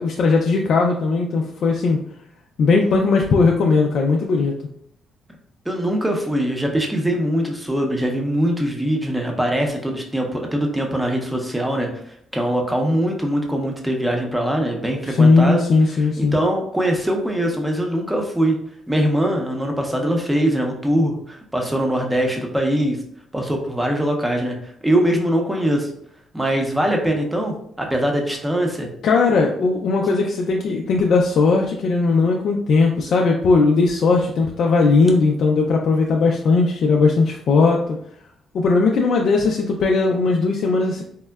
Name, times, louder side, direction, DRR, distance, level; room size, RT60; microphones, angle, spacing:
voice 1, 0.0-2.0 2.6-4.6 15.1-16.4 29.0-37.8 38.5-41.0, left 4 dB, 65° left, 0 dB, 0.3 m, -18 dB
voice 2, 5.7-11.9 12.3-15.6 16.2-18.6 18.9-23.0 23.3-25.9 26.3-28.9, right 1 dB, 10° right, 2 dB, 0.6 m, -22 dB
3.5 x 2.1 x 2.2 m, 0.68 s
cardioid pair, 90°, 0 cm